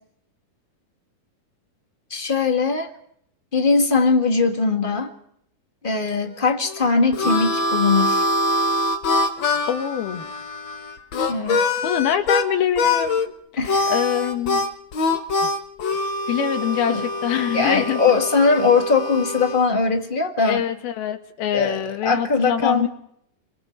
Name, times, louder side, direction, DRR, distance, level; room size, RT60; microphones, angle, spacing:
voice 1, 2.1-2.9 3.5-5.1 5.8-8.2 11.3-11.8 13.6-13.9 16.9-17.1 17.5-20.6 21.5-22.9, left 4 dB, 25° left, 4 dB, 1.1 m, -20 dB
Harmonica, 6.7-12.5 12.8-13.3 13.6-19.7, left 2 dB, 55° left, 1.3 m, -24 dB
voice 2, 9.7-10.3 11.8-13.3 13.9-14.6 16.3-18.0 20.5-22.9, left 9 dB, 85° left, 6 dB, 3.7 m, -24 dB
28.0 x 23.5 x 4.7 m, 0.71 s
omnidirectional pair, 4.3 m